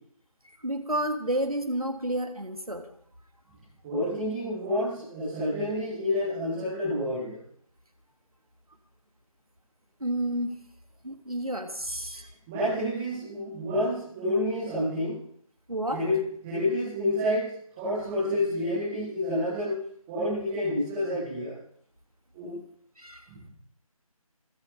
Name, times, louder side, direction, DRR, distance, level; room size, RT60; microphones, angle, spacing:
voice 1, 0.6-2.9 10.0-10.5 11.0-12.3 15.7-16.0 23.0-23.2, right 1 dB, 90° right, 6 dB, 2.8 m, -30 dB
voice 2, 3.8-7.4 12.5-15.2 15.9-16.2 16.4-19.8 20.1-21.5 22.3-22.5 23.3-23.5, left 1 dB, ahead, -15 dB, 0.6 m, -29 dB
25.5 x 8.5 x 5.4 m, 0.62 s
figure-of-eight pair, 165°, 18 cm